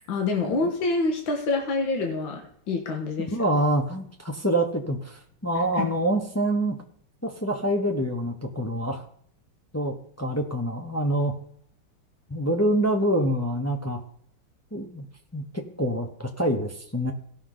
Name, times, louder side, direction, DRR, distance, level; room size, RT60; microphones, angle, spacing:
voice 1, 0.1-3.3 5.7-5.9, left 3 dB, 70° left, 2 dB, 2.1 m, -26 dB
voice 2, 3.3-6.8 7.2-9.0 9.7-11.3 12.3-14.0 14.7-15.1 15.3-17.1, right 1 dB, 15° left, 2 dB, 0.5 m, -26 dB
17.5 x 6.3 x 3.9 m, 0.63 s
omnidirectional pair, 2.2 m